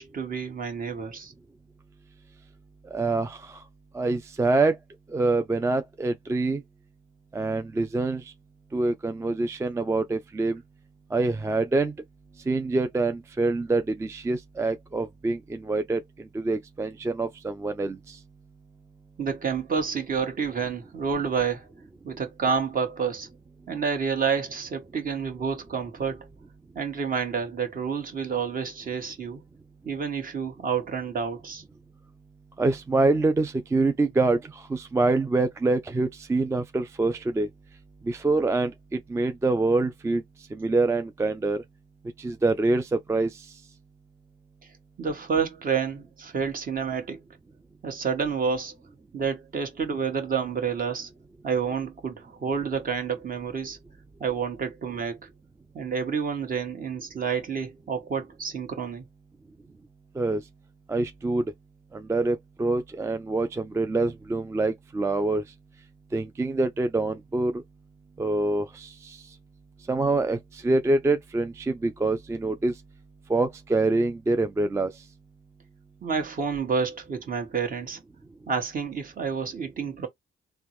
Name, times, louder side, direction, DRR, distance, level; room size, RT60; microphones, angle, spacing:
voice 1, 0.0-1.3 19.2-21.7 22.0-23.3 23.7-26.3 26.7-29.4 29.8-31.6 45.0-47.2 47.8-48.7 49.1-51.1 51.4-53.8 54.2-55.3 55.7-59.0 76.0-78.0 78.5-80.1, right 6 dB, 45° right, 1.3 m, -29 dB
voice 2, 2.9-3.6 3.9-4.8 5.1-6.6 7.3-8.3 8.7-10.6 11.1-11.9 12.5-16.0 16.3-18.2 32.6-37.5 38.0-40.2 40.5-41.6 42.2-43.5 60.2-60.4 60.9-61.4 61.9-65.4 66.1-67.6 68.2-69.2 69.9-72.7 73.3-74.9, right 2 dB, 15° right, 0.3 m, -25 dB
3.5 x 2.1 x 3.0 m
cardioid pair, 90°, 20 cm